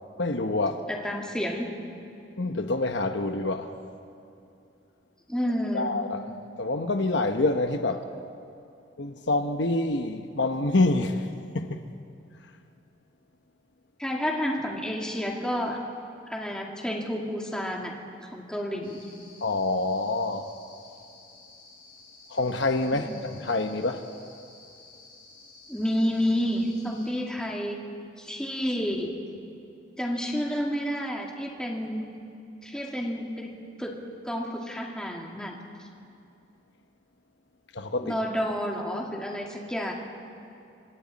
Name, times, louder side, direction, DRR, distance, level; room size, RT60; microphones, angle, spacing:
voice 1, 0.2-0.8 2.4-3.7 5.7-6.3 6.6-8.1 9.0-11.3 11.5-11.8 19.4-20.5 22.3-24.1 37.7-38.2, left 2 dB, 70° left, 1.0 m, -26 dB
voice 2, 0.9-1.8 5.3-5.9 14.0-15.9 16.3-18.0 18.3-19.1 22.9-23.1 25.7-27.9 28.2-29.2 30.0-32.0 32.6-35.9 38.0-39.9, equal, 5° left, 2.2 m, -30 dB
sound 1, 18.8-27.1, left 3 dB, 30° left, 7.1 m, -52 dB
29.5 x 26.0 x 4.2 m
head